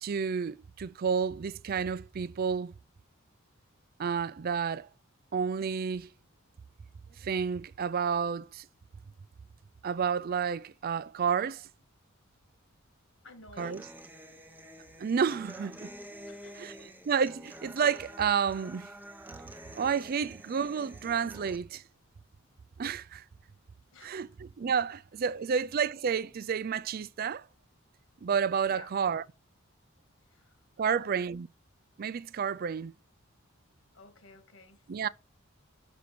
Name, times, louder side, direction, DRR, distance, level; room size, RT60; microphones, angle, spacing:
voice 1, 0.0-2.7 4.0-4.9 5.3-6.1 7.2-8.7 9.8-11.7 13.6-13.9 15.0-15.9 16.6-16.7 17.1-18.9 19.7-21.8 22.8-23.2 24.0-27.4 28.2-29.2 30.8-31.5 32.0-32.9 34.9-35.1, right 6 dB, 45° right, 0.4 m, -30 dB
voice 2, 13.2-13.9 16.3-16.9 23.9-24.2 25.3-25.4 28.7-28.9 30.3-30.6 30.8-31.4 33.9-34.8, left 3 dB, 70° left, 2.1 m, -52 dB
Human voice / Acoustic guitar, 13.6-21.6, equal, 10° right, 0.9 m, -48 dB
6.2 x 6.0 x 6.9 m
head